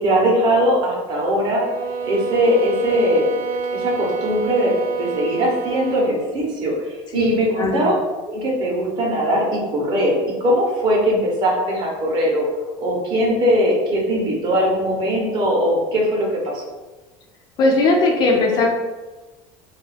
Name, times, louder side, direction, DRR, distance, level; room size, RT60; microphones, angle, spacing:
voice 1, 0.0-1.6 2.0-3.3 3.7-7.9 8.2-12.5 12.8-16.6, equal, 35° right, -2 dB, 0.6 m, -20 dB
sound 1, 1.5-6.2, right 5 dB, 70° right, 0.4 m, -27 dB
voice 2, 7.6-7.9 17.6-18.7, left 2 dB, 35° left, 0 dB, 0.3 m, -18 dB
2.3 x 2.2 x 3.2 m, 1.2 s
cardioid pair, 160°, 13 cm